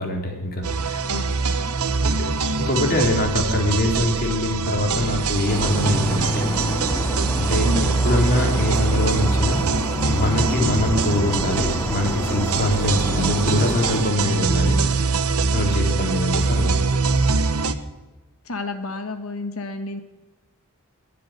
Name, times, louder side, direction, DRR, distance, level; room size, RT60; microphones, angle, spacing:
voice 1, 0.0-1.0 2.0-2.3 2.6-6.5 7.4-7.7 8.0-9.6 10.1-14.9 15.5-17.1, left 1 dB, 45° left, 1 dB, 3.8 m, -23 dB
sound 1, 0.6-17.8, right 4 dB, 85° right, 1.2 m, -23 dB
voice 2, 1.1-1.7 7.6-7.9 14.2-14.5 18.4-20.0, left 2 dB, 70° left, 7 dB, 1.7 m, -31 dB
sound 2, 5.5-14.0, left 2 dB, 10° left, 0.4 m, -30 dB
22.0 x 7.8 x 8.1 m, 1.2 s
head